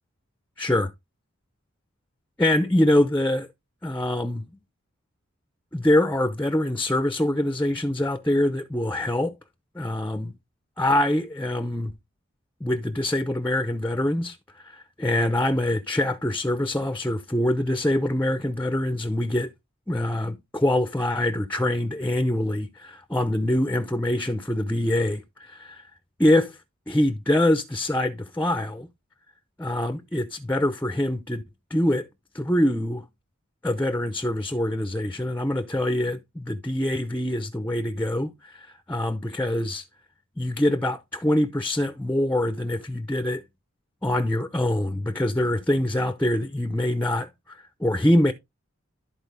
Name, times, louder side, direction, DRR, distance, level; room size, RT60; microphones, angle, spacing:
voice 1, 0.6-0.9 2.4-3.5 3.8-4.5 5.7-9.3 9.7-10.3 10.8-11.9 12.6-14.4 14.6-19.5 19.9-25.8 26.2-26.6 26.9-28.9 29.6-31.4 31.7-32.1 32.3-33.0 33.6-39.9 40.4-43.4 44.0-48.3, left 1 dB, 10° left, 0.6 m, -24 dB
13.0 x 4.4 x 3.3 m
head